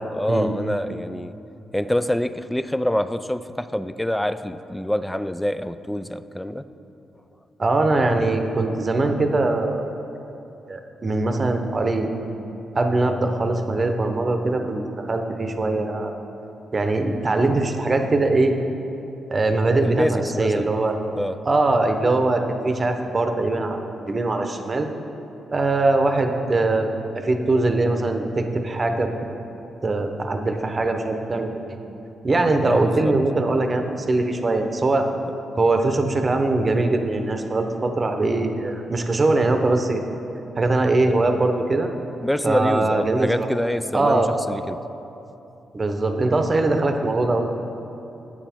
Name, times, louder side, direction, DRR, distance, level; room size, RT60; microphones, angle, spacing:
voice 1, 0.1-1.3 1.7-6.7 19.8-20.7 21.1-21.4 32.6-33.1 42.2-44.8, left 1 dB, 5° left, 12 dB, 0.3 m, -26 dB
voice 2, 7.6-9.8 10.7-12.1 12.7-16.1 16.7-18.5 19.3-21.0 21.5-24.9 25.5-29.1 29.8-31.5 32.2-35.1 35.6-40.0 40.6-41.9 42.4-43.5 43.9-44.3 45.7-47.5, right 2 dB, 35° right, 5 dB, 0.8 m, -21 dB
8.6 x 7.0 x 4.4 m, 2.9 s
supercardioid pair, 60°, 0 cm